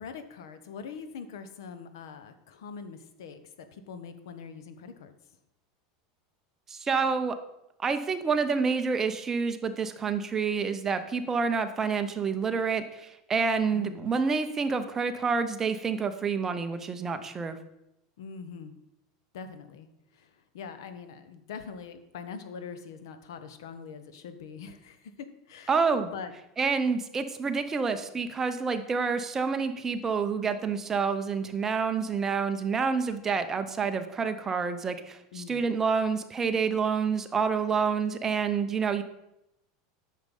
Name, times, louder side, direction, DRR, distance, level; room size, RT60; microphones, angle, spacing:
voice 1, 0.0-5.1 13.7-14.1 18.2-18.7 19.3-19.9 20.1-25.7 26.1-26.3 35.3-35.6, left 6 dB, 85° left, 10 dB, 1.1 m, -43 dB
voice 2, 6.7-7.3 7.8-17.6 25.7-26.1 26.6-39.0, right 5 dB, 20° right, 9 dB, 0.8 m, -28 dB
9.5 x 6.6 x 5.4 m, 0.85 s
supercardioid pair, 140°, 2 cm